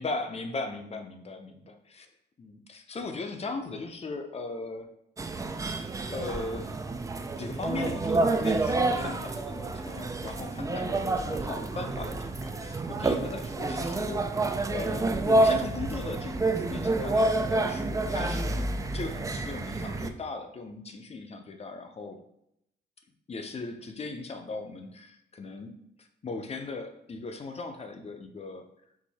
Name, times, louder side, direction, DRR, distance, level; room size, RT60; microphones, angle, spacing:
voice 1, 0.0-2.1 2.4-4.9 6.1-6.8 7.4-14.4 14.7-22.2 23.3-25.7 26.0-28.6, left 3 dB, 30° left, 6 dB, 0.6 m, -38 dB
sound 1, 5.2-20.1, right 2 dB, 15° right, 0.3 m, -28 dB
4.7 x 2.6 x 4.1 m, 0.78 s
cardioid pair, 90°, 20 cm